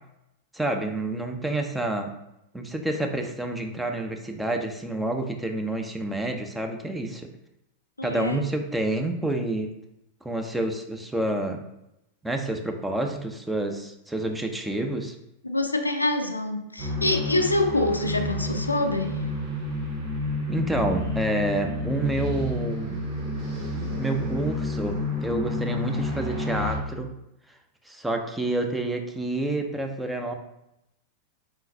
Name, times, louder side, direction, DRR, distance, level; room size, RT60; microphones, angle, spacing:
voice 1, 0.5-2.1 2.5-7.3 8.0-9.7 10.2-11.6 12.2-15.1 20.5-23.0 24.0-27.1 27.9-30.3, right 2 dB, 5° right, 4 dB, 0.5 m, -28 dB
voice 2, 8.0-8.4 15.4-19.2, left 2 dB, 85° left, 6 dB, 0.4 m, -25 dB
sound 1, 16.8-26.7, left 2 dB, 40° right, 1.5 m, -30 dB
4.9 x 3.8 x 2.6 m, 0.85 s
figure-of-eight pair, 90°, 0 cm